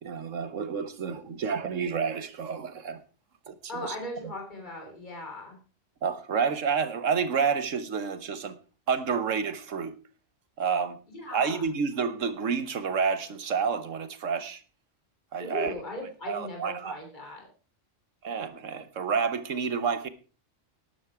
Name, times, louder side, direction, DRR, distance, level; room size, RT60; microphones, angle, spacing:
voice 1, 0.0-3.0 3.5-3.9 6.0-8.6 8.9-9.9 10.6-11.0 11.3-14.6 15.3-15.7 16.3-17.0 18.2-20.1, right 6 dB, 90° right, 1.5 m, -29 dB
voice 2, 3.7-5.6 11.1-11.6 15.4-17.5, left 1 dB, 40° left, 3.6 m, -38 dB
12.5 x 11.0 x 4.7 m
omnidirectional pair, 1.3 m